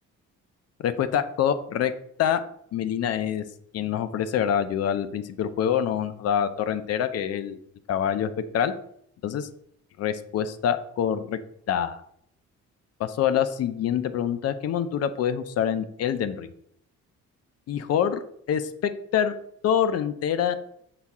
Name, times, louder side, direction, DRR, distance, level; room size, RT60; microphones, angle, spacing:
voice 1, 0.8-1.9 2.2-2.4 2.7-3.4 3.7-7.6 7.9-8.7 9.2-9.5 10.0-11.4 11.7-12.0 13.0-16.5 17.7-18.2 18.5-19.3 19.6-20.6, left 9 dB, 55° left, 11 dB, 0.4 m, -25 dB
5.7 x 3.5 x 2.3 m, 0.71 s
cardioid pair, 90°, 30 cm